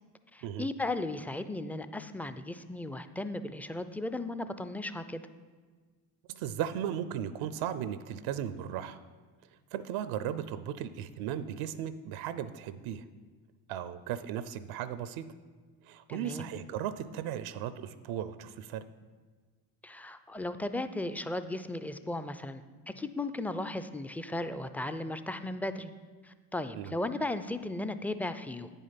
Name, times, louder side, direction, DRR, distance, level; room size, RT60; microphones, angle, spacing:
voice 1, 0.3-5.2 16.1-16.5 19.8-25.9 26.2-28.7, left 2 dB, 5° left, 11 dB, 0.4 m, -36 dB
voice 2, 6.3-9.0 9.7-13.1 13.7-15.3 15.8-18.8 26.7-26.9, right 10 dB, 70° right, 14 dB, 0.6 m, -36 dB
9.2 x 5.4 x 5.7 m, 1.5 s
hypercardioid pair, 60°, 50 cm